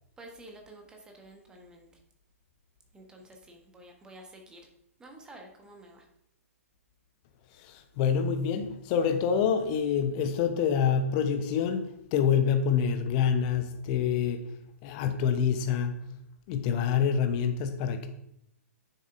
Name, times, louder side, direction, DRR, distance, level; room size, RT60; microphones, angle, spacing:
voice 1, 0.2-2.0 2.9-4.7 5.0-6.1, right 1 dB, 10° right, 2 dB, 1.3 m, -50 dB
voice 2, 7.5-14.5 14.8-16.0 16.5-18.1, left 7 dB, 30° left, 7 dB, 0.9 m, -27 dB
9.9 x 6.6 x 2.6 m, 0.78 s
figure-of-eight pair, 120°, 8 cm